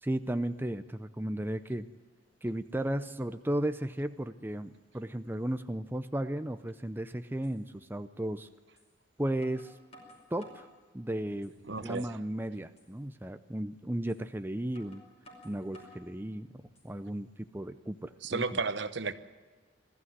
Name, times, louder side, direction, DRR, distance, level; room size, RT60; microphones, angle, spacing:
voice 1, 0.0-1.9 2.4-8.5 9.2-9.7 10.3-10.7 10.9-11.5 11.8-15.0 15.4-16.5 16.8-18.4, right 1 dB, 10° right, 10 dB, 0.6 m, -34 dB
sound 1, 7.4-7.6 8.8-8.9 9.4-10.7 11.2-11.8 12.2-12.3 12.8-12.9 14.1-14.2 14.7-16.1 16.6-17.1, left 1 dB, 35° left, 5.3 m, -55 dB
voice 2, 11.6-12.2 18.2-19.1, right 4 dB, 65° right, 12 dB, 1.1 m, -33 dB
21.5 x 14.5 x 9.6 m, 1.4 s
head